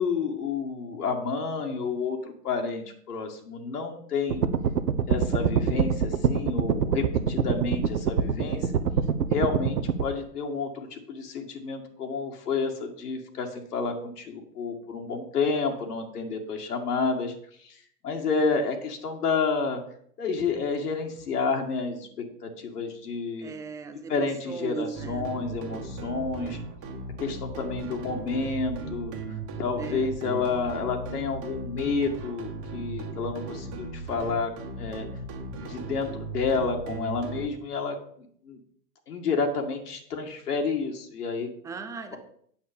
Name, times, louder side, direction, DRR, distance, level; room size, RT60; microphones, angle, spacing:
voice 1, 0.0-4.5 5.1-8.7 9.3-17.3 17.6-19.8 20.2-23.5 24.1-26.6 27.2-29.1 29.6-34.5 34.8-35.1 35.7-38.0 38.4-38.6 39.1-41.5, left 4 dB, 70° left, 2 dB, 1.9 m, -30 dB
sound 1, 4.3-10.0, right 7 dB, 75° right, 1.0 m, -25 dB
voice 2, 23.4-25.3 26.0-26.3 29.8-30.1 41.6-42.2, right 5 dB, 5° right, 8 dB, 0.5 m, -38 dB
sound 2, 24.9-37.5, right 3 dB, 30° right, 1.7 m, -37 dB
8.9 x 7.4 x 5.1 m, 0.62 s
hypercardioid pair, 115°, 48 cm